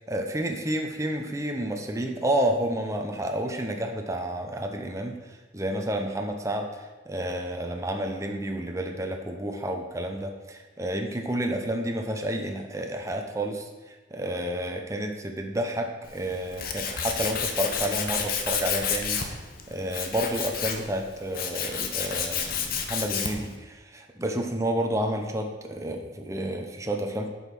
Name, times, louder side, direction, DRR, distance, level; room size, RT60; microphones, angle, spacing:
voice 1, 0.1-5.2 5.5-13.7 14.1-19.2 19.7-27.3, right 1 dB, 15° right, 3 dB, 0.8 m, -30 dB
Tools, 16.0-23.5, left 6 dB, 55° left, 0.9 m, -30 dB
7.8 x 5.5 x 6.0 m, 1.2 s
head